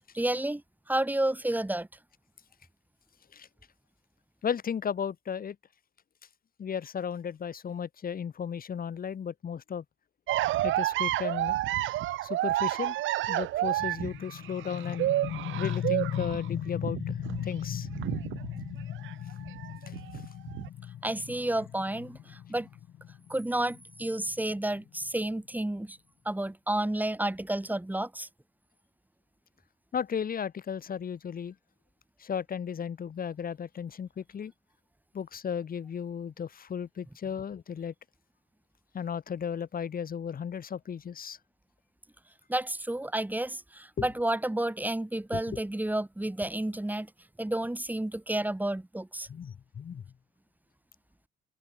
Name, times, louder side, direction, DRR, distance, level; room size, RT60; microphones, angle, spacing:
voice 1, 0.1-0.6 0.9-1.9 21.0-22.7 23.3-26.0 26.3-28.3 42.5-47.1 47.4-49.3, right 1 dB, 10° right, 3.7 m, -31 dB
voice 2, 4.4-5.6 6.6-9.8 10.6-11.6 12.2-13.0 13.3-15.1 15.6-17.2 17.4-17.9 29.9-31.5 32.2-34.5 35.1-37.9 38.9-41.4 44.0-44.1 45.3-45.4 49.3-50.0, left 7 dB, 45° left, 1.7 m, -35 dB
sound 1, 10.3-19.1 19.4-20.7, right 15 dB, 75° right, 0.6 m, -30 dB
sound 2, 13.8-25.2, left 11 dB, 65° left, 2.3 m, -38 dB
cardioid pair, 90°, 20 cm